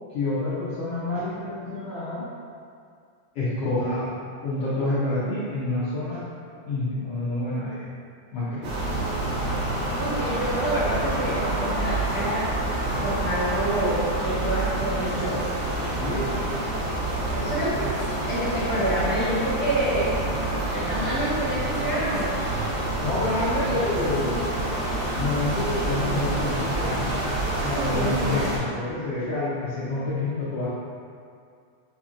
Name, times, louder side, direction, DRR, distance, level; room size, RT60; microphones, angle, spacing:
voice 1, 0.1-2.3 3.3-4.1 4.4-6.2 6.7-7.9 8.3-8.7 16.0-16.3 23.0-24.4 25.2-27.0 27.6-30.7, left 2 dB, 75° left, -11 dB, 1.4 m, -28 dB
sound 1, 8.6-28.6, right 1 dB, 85° right, 2.6 m, -27 dB
voice 2, 10.0-12.5 13.0-15.4 17.3-20.2 20.7-22.3 27.7-28.3, right 1 dB, 65° right, -15 dB, 0.9 m, -28 dB
6.6 x 2.9 x 2.4 m, 2.3 s
omnidirectional pair, 3.6 m